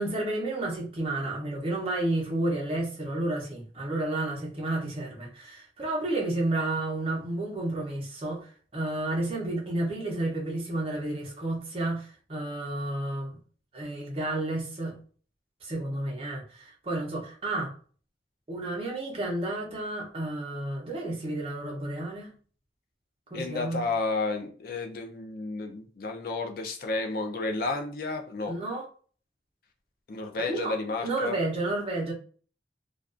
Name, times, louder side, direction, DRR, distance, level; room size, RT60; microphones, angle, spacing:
voice 1, 0.0-13.4 13.7-15.0 15.6-17.7 18.5-22.3 23.3-23.8 28.5-28.8 30.4-30.7 31.0-32.1, right 2 dB, 30° right, 0.6 m, -31 dB
voice 2, 23.3-28.5 30.1-31.4, left 3 dB, 55° left, 0.4 m, -32 dB
2.3 x 2.3 x 2.4 m
head